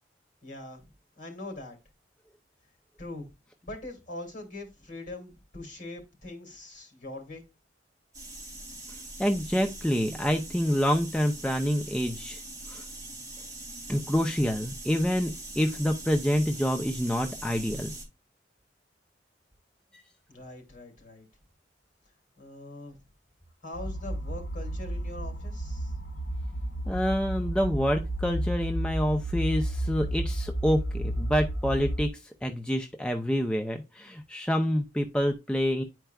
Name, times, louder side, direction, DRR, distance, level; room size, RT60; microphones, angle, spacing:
voice 1, 0.4-0.9 1.1-1.8 3.0-3.3 3.6-7.4 20.3-21.3 22.4-23.0 23.6-26.0, left 2 dB, 45° left, 2.6 m, -42 dB
sound 1, 8.1-18.0, right 2 dB, 20° right, 2.6 m, -42 dB
voice 2, 9.2-12.4 12.7-12.8 13.9-17.9 26.9-35.8, equal, 5° left, 0.6 m, -27 dB
sound 2, 23.7-32.1, equal, 75° left, 0.8 m, -32 dB
10.0 x 4.6 x 2.3 m
head